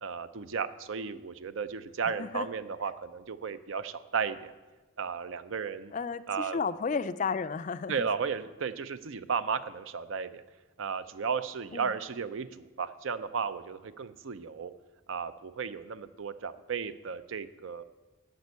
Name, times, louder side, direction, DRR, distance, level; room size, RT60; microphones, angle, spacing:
voice 1, 0.0-4.5 5.0-5.9 6.3-6.6 7.9-10.4 10.8-14.7 15.1-17.8, right 6 dB, 65° right, 13 dB, 0.5 m, -34 dB
voice 2, 2.1-2.5 5.9-8.1 11.7-11.9, left 5 dB, 35° left, 14 dB, 0.3 m, -33 dB
11.0 x 5.3 x 8.1 m, 1.2 s
head